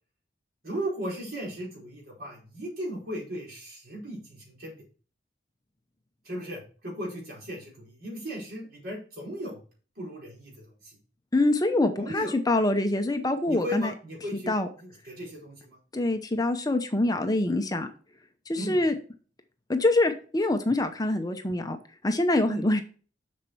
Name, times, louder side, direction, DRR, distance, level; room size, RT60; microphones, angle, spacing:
voice 1, 0.6-4.8 6.2-9.6 10.0-11.0 12.0-12.3 13.5-15.8 18.6-18.8 22.5-22.6, equal, 60° right, -2 dB, 4.9 m, -36 dB
voice 2, 11.3-13.9 14.3-14.7 15.9-17.9 18.5-18.9 19.7-21.8 22.0-22.8, left 2 dB, 20° left, 7 dB, 0.8 m, -25 dB
7.4 x 6.6 x 4.6 m, 0.39 s
head